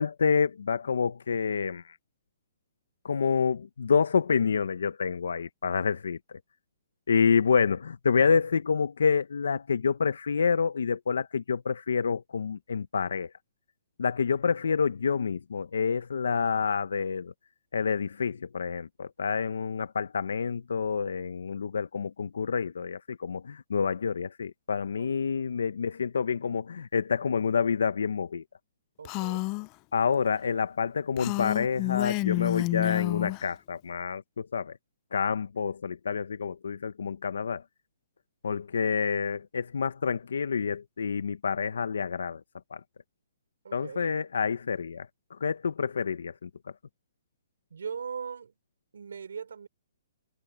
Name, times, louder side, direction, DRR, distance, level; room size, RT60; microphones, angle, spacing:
voice 1, 0.0-2.0 3.0-6.2 7.1-13.3 14.0-17.3 17.7-28.4 29.9-34.7 35.1-37.6 38.4-42.4 42.7-42.8 43.7-45.1 45.4-46.5, left 6 dB, 90° left, 0.7 m, -28 dB
Female speech woman speaking, 29.0-29.7 31.2-33.4, left 23 dB, 20° left, 0.3 m, -29 dB
voice 2, 29.0-29.5 43.6-44.1 47.7-48.5 48.9-49.7, right 6 dB, 85° right, 5.1 m, -39 dB
hypercardioid pair, 175°, 0 cm